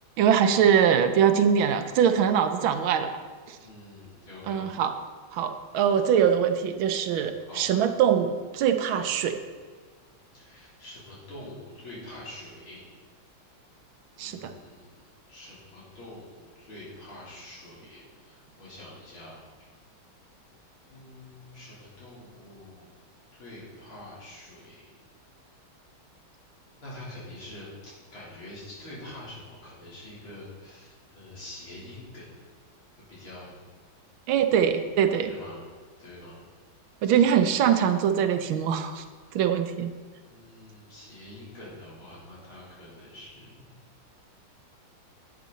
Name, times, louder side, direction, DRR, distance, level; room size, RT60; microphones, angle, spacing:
voice 1, 0.2-3.1 3.5-3.6 4.5-4.9 5.3-9.4 14.2-14.5 34.3-35.3 37.0-39.0 39.3-39.9, right 8 dB, 75° right, 8 dB, 1.5 m, -23 dB
voice 2, 3.6-4.7 7.1-7.6 10.3-12.8 14.2-15.0 15.3-19.4 20.9-22.9 23.3-24.8 26.8-32.3 33.1-33.5 35.2-35.6 36.0-36.4 37.0-37.2 39.3-39.4 40.2-43.7, left 1 dB, 80° left, -8 dB, 4.4 m, -45 dB
10.0 x 9.1 x 4.0 m, 1.5 s
omnidirectional pair, 2.3 m